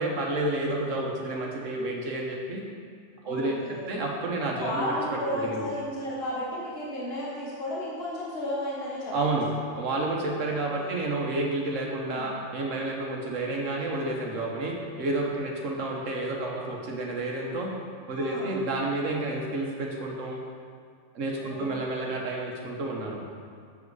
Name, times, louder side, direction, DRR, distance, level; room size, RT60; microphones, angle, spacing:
voice 1, 0.0-2.6 3.2-3.6 3.9-5.7 9.1-9.5 9.8-17.7 18.1-20.4 21.1-23.2, right 2 dB, 80° right, -1 dB, 1.4 m, -30 dB
voice 2, 3.2-3.9 4.5-9.1 10.5-11.0 12.0-12.3 18.2-18.6 21.4-22.1, left 1 dB, 50° left, -5 dB, 1.6 m, -34 dB
7.5 x 7.5 x 4.7 m, 2.1 s
omnidirectional pair, 1.3 m